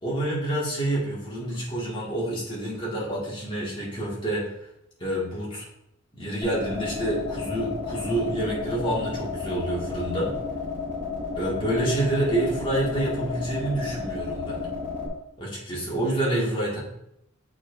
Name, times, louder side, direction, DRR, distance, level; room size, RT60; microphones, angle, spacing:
voice 1, 0.0-4.5 5.0-5.7 6.2-10.3 11.4-14.6 15.4-16.8, right 1 dB, 25° left, -6 dB, 1.9 m, -28 dB
sound 1, 6.4-15.1, left 4 dB, 10° right, 2.1 m, -32 dB
7.8 x 4.6 x 2.6 m, 0.79 s
head